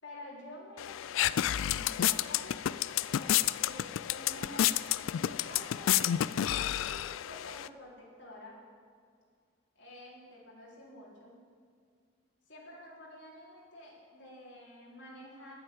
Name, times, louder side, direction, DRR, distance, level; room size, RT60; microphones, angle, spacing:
voice 1, 0.0-4.7 5.1-6.0 6.5-8.6 9.8-11.4 12.5-15.5, left 1 dB, 60° left, -5 dB, 3.8 m, -50 dB
sound 1, 0.8-7.7, left 11 dB, 75° left, 0.3 m, -30 dB
10.5 x 9.2 x 8.5 m, 2.1 s
head